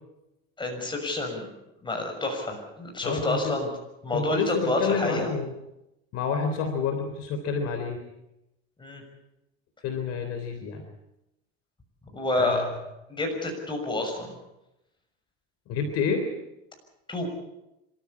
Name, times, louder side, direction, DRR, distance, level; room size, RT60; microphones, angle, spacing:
voice 1, 0.6-1.5 1.8-3.7 4.0-5.3 8.8-9.0 12.1-12.7 13.1-14.3 17.1-17.3, left 2 dB, 15° left, 3 dB, 6.4 m, -28 dB
voice 2, 3.0-3.6 4.1-5.5 6.1-8.0 9.8-10.8 12.4-12.7 15.7-16.3, left 5 dB, 50° left, 5 dB, 3.5 m, -28 dB
26.5 x 14.0 x 8.5 m, 0.90 s
supercardioid pair, 120°, 31 cm